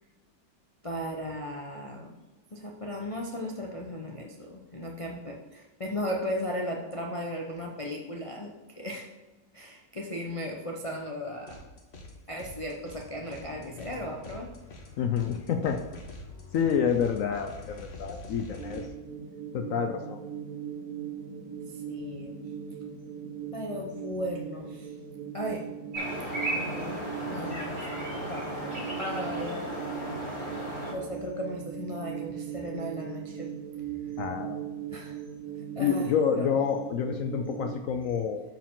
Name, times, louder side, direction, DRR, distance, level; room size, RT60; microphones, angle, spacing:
voice 1, 0.8-2.1 2.5-9.1 9.5-11.6 12.3-14.5 21.7-22.3 23.5-24.9 25.3-25.7 26.5-27.0 27.3-27.8 28.3-28.5 29.0-29.7 30.8-33.5 34.9-35.2 35.8-36.5, equal, 55° left, -1 dB, 0.3 m, -36 dB
sound 1, 11.5-12.1 12.4-18.9, left 2 dB, 40° left, 1.2 m, -45 dB
voice 2, 15.0-15.8 16.5-18.8 19.5-20.2 34.2-34.6 35.8-38.4, left 7 dB, 75° left, 5 dB, 0.7 m, -28 dB
sound 2, 18.6-37.8, right 8 dB, 55° right, 1.2 m, -39 dB
sound 3, 25.9-30.9, equal, 35° right, 3.7 m, -35 dB
13.0 x 4.9 x 3.7 m, 1.1 s
omnidirectional pair, 2.0 m